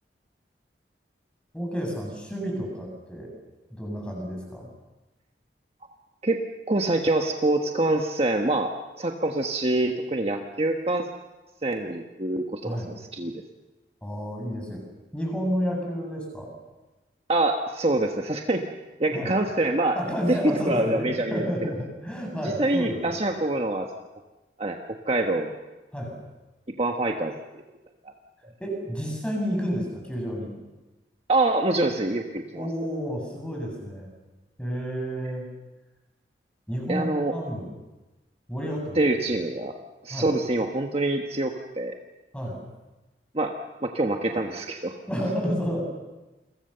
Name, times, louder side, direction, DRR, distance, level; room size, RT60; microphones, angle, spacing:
voice 1, 1.5-3.3 3.7-4.7 12.6-12.9 14.0-14.8 15.1-16.5 19.1-19.3 19.9-23.0 25.9-26.1 28.6-30.5 32.5-34.1 34.6-35.5 36.7-37.7 38.5-39.0 40.1-40.3 42.3-42.6 45.1-45.8, equal, 5° left, 0 dB, 7.9 m, -30 dB
voice 2, 6.7-11.1 11.6-12.8 13.1-13.3 17.3-18.6 19.0-20.0 20.3-20.4 20.7-21.7 22.4-23.9 24.6-25.6 26.8-27.6 31.3-32.7 36.9-37.4 38.9-39.8 40.0-41.9 43.3-43.5 43.8-45.0, right 2 dB, 35° right, 3 dB, 1.3 m, -25 dB
29.0 x 23.0 x 6.9 m, 1.1 s
head